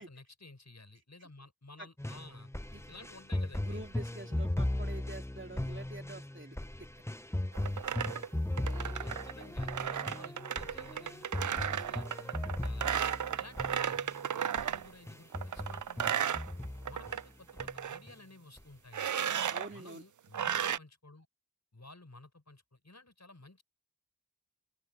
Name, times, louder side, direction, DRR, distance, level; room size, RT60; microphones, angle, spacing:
voice 1, 0.0-2.5 2.9-3.8 8.6-12.9 13.4-14.0 14.3-16.4 16.9-19.1 19.7-21.3 21.7-23.6, left 2 dB, 55° left, 6.4 m, -54 dB
sound 1, 2.0-14.2 14.6-14.8 15.1-17.2 17.6-18.1 18.6-18.7, left 1 dB, 10° left, 0.7 m, -37 dB
voice 2, 3.6-6.6 19.5-20.0, right 2 dB, 35° right, 2.5 m, -46 dB
sound 2, 7.5-14.9 15.3-17.2 17.5-18.0 18.9-19.7 20.3-20.8, right 9 dB, 65° right, 0.4 m, -34 dB
open air
wide cardioid pair, 45°, 33 cm